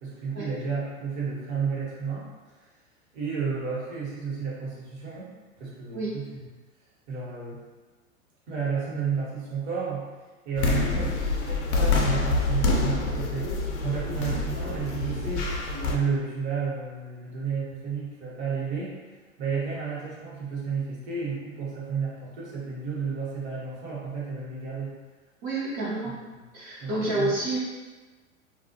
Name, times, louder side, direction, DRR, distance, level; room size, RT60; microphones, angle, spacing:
voice 1, 0.0-2.3 3.1-5.3 5.6-6.3 7.1-7.6 8.5-10.0 10.4-11.2 11.5-15.5 15.9-19.0 19.4-24.9 26.0-26.1 26.8-27.3, right 5 dB, 55° right, -6 dB, 1.2 m, -32 dB
sound 1, 10.6-16.0, left 3 dB, 60° left, 0.5 m, -26 dB
voice 2, 25.4-26.2 26.5-27.6, right 2 dB, 35° right, -7 dB, 0.8 m, -29 dB
2.3 x 2.1 x 2.8 m, 1.3 s
hypercardioid pair, 100°, 41 cm